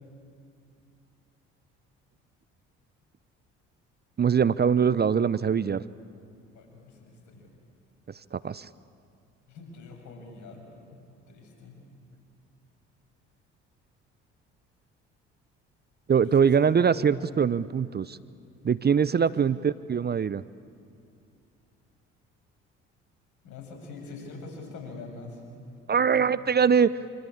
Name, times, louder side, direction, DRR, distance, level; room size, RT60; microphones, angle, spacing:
voice 1, 4.2-5.8 8.1-8.7 16.1-18.2 18.6-20.4 25.9-27.0, right 7 dB, 30° right, 17 dB, 0.7 m, -23 dB
voice 2, 6.5-7.5 9.5-11.8 16.2-17.3 19.1-19.5 23.4-25.4 25.9-26.2, left 3 dB, 65° left, 2 dB, 7.1 m, -44 dB
26.5 x 25.5 x 8.6 m, 2.5 s
hypercardioid pair, 55°, 32 cm